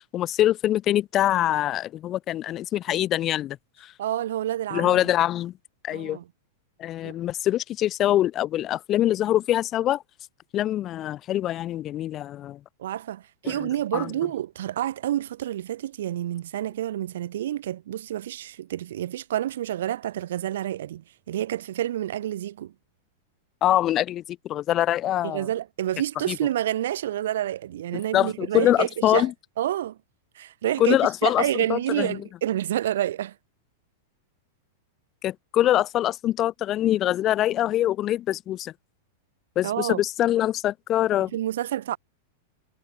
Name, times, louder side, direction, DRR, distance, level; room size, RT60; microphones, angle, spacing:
voice 1, 0.1-3.9 4.7-5.5 5.8-6.2 6.8-10.0 10.5-12.6 13.4-14.1 23.6-25.4 26.3-26.4 28.1-29.3 30.8-32.2 35.2-38.7 39.5-41.3, left 13 dB, 20° left, 1.3 m, -24 dB
voice 2, 4.0-5.0 5.9-6.2 7.0-7.2 12.8-22.7 25.2-29.3 29.6-30.0 30.3-33.3 39.6-40.0 41.3-42.0, right 12 dB, 65° right, 4.7 m, -28 dB
supercardioid pair, 175°, 0 cm